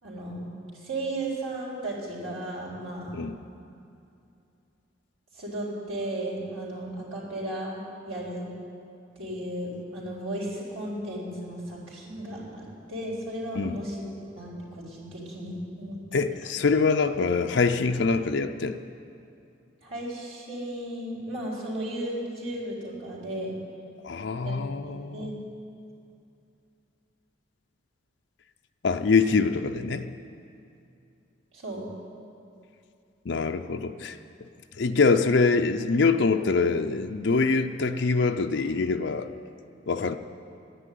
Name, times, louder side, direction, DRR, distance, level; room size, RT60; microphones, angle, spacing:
voice 1, 0.0-3.2 5.3-8.5 9.2-16.2 19.8-23.6 24.4-24.6 24.9-25.3 31.5-31.9, right 1 dB, 90° right, -4 dB, 4.0 m, -35 dB
voice 2, 16.1-18.8 24.0-25.3 28.8-30.1 33.3-34.2 34.8-39.3 39.9-40.2, left 4 dB, 65° left, 6 dB, 0.5 m, -24 dB
11.0 x 10.0 x 9.3 m, 2.6 s
head